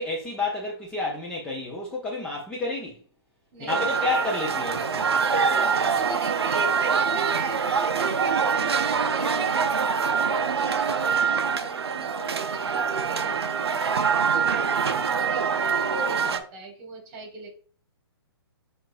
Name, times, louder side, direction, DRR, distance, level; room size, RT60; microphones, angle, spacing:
voice 1, 0.0-3.0 3.6-5.1, left 3 dB, 5° left, 0.6 m, -30 dB
voice 2, 3.5-3.9 5.4-13.7 14.3-17.5, right 2 dB, 35° right, 1.6 m, -41 dB
sound 1, 3.7-16.4, right 6 dB, 70° right, 0.5 m, -24 dB
7.3 x 2.6 x 2.6 m
figure-of-eight pair, 125°, 14 cm